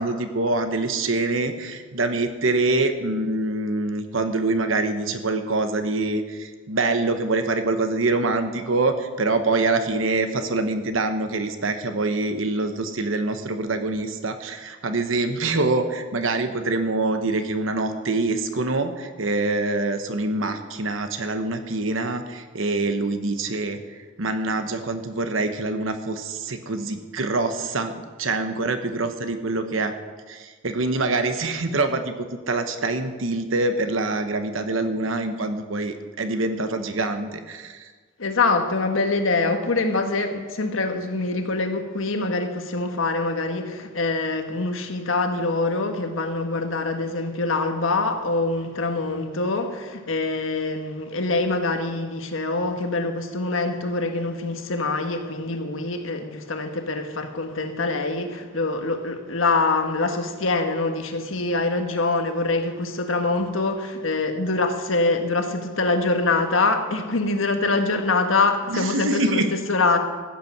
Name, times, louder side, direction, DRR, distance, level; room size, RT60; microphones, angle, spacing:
voice 1, 0.0-27.9 28.2-29.9 30.3-37.9 68.7-69.5, right 2 dB, 80° right, 8 dB, 1.1 m, -25 dB
voice 2, 38.2-70.0, left 3 dB, 85° left, 6 dB, 1.4 m, -24 dB
14.5 x 8.5 x 6.0 m, 1.4 s
head